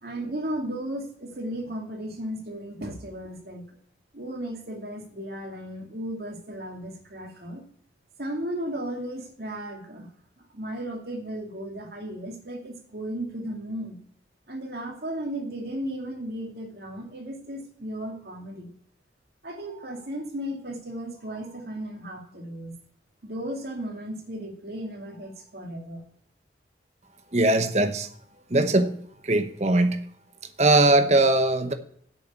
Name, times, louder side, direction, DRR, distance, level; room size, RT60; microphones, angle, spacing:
voice 1, 0.0-3.6 4.1-7.6 8.2-10.1 10.5-14.0 14.5-18.7 19.4-22.8 23.2-26.0, right 1 dB, 65° right, 2.5 m, -35 dB
voice 2, 27.3-28.1 28.5-28.9 29.3-30.0 30.6-31.7, right 2 dB, 40° right, 0.9 m, -20 dB
8.5 x 6.6 x 8.5 m
head